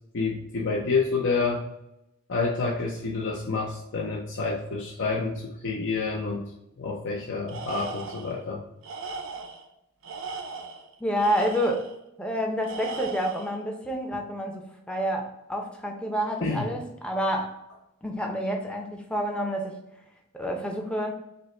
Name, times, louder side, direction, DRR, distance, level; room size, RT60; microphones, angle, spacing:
voice 1, 0.1-1.6 2.3-6.5 6.8-8.6 16.4-16.7, left 4 dB, 60° left, -1 dB, 0.6 m, -28 dB
Tools, 7.5-8.4 8.8-9.6 10.0-11.9 12.6-13.6, right 4 dB, 70° right, 0.7 m, -37 dB
voice 2, 11.0-11.9 12.2-17.5 18.0-19.8 20.3-21.1, equal, 5° left, 1 dB, 0.5 m, -28 dB
5.2 x 2.1 x 4.2 m, 0.84 s
head